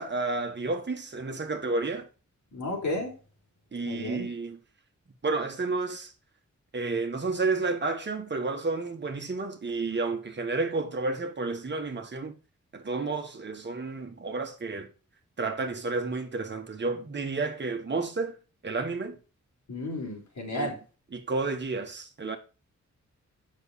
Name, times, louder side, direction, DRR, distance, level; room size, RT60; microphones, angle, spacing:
voice 1, 0.0-2.1 3.7-4.6 5.2-6.1 6.7-12.3 12.7-14.9 15.4-18.4 18.6-19.2 20.5-20.7 21.1-22.4, right 3 dB, 40° right, 1.5 m, -31 dB
voice 2, 2.5-3.1 3.9-4.3 19.7-20.8, left 1 dB, 80° left, 3.9 m, -32 dB
8.0 x 6.4 x 4.1 m
wide cardioid pair, 160°, 29 cm